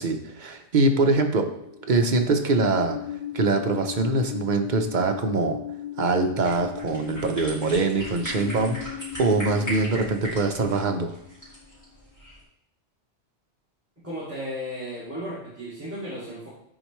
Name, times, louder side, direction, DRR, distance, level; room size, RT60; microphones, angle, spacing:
voice 1, 0.0-1.5 1.9-3.0 3.3-5.6 6.0-11.1, right 3 dB, 45° right, 4 dB, 0.8 m, -23 dB
sound 1, 0.9-11.8, left 11 dB, 85° left, 2.4 m, -38 dB
sound 2, 6.4-12.4, right 1 dB, 15° left, 2.9 m, -38 dB
voice 2, 14.0-16.5, equal, 10° right, -11 dB, 2.3 m, -34 dB
10.0 x 4.5 x 3.1 m, 0.76 s
omnidirectional pair, 1.2 m